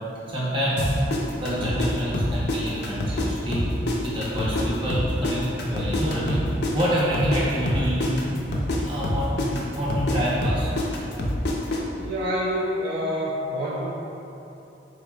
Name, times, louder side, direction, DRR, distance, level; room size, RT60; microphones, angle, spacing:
voice 1, 0.3-3.7 4.0-6.4 6.7-8.5 8.9-10.7, equal, 30° right, -7 dB, 0.7 m, -27 dB
sound 1, 0.8-3.3 3.5-7.4 7.7-11.8, left 1 dB, 60° left, 0.4 m, -26 dB
voice 2, 12.0-13.9, equal, 55° right, -6 dB, 0.4 m, -27 dB
3.9 x 3.1 x 2.3 m, 2.9 s
head